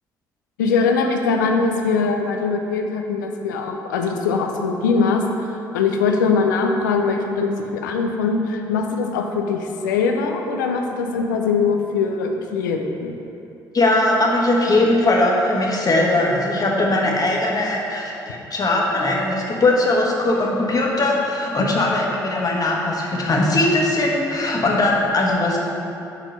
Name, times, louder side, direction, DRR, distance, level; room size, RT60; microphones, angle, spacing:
voice 1, 0.6-13.2 21.7-21.9, left 4 dB, 85° left, 3 dB, 0.4 m, -22 dB
voice 2, 13.7-25.6, left 2 dB, 40° left, -2 dB, 1.3 m, -20 dB
6.2 x 4.4 x 5.2 m, 2.9 s
hypercardioid pair, 45°, 10 cm